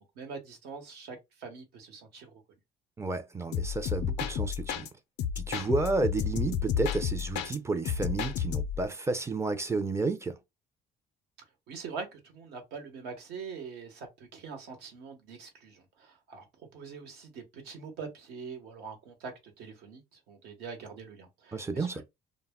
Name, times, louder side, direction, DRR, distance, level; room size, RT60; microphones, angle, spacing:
voice 1, 0.1-2.4 11.7-22.0, right 5 dB, 80° right, 1.0 m, -44 dB
voice 2, 3.0-4.9 5.4-10.4 21.5-22.0, right 3 dB, 15° right, 0.4 m, -31 dB
sound 1, 3.5-4.9 5.2-7.6 7.8-8.9, left 8 dB, 80° left, 0.4 m, -31 dB
2.1 x 2.1 x 3.5 m
cardioid pair, 110°, 17 cm